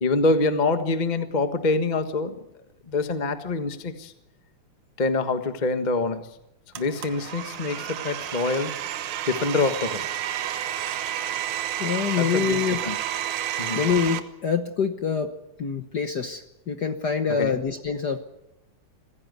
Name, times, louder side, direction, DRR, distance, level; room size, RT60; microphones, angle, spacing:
voice 1, 0.0-2.4 2.9-4.1 5.0-6.3 6.7-10.1 12.2-13.0 13.6-13.8 17.4-17.6, left 3 dB, 40° left, 8 dB, 0.6 m, -25 dB
Domestic sounds home sounds, 6.7-14.2, right 11 dB, 80° right, 2.6 m, -31 dB
voice 2, 11.8-12.8 13.8-15.3 15.6-18.2, left 6 dB, 55° left, 7 dB, 1.2 m, -25 dB
25.0 x 16.0 x 9.4 m, 0.89 s
omnidirectional pair, 3.4 m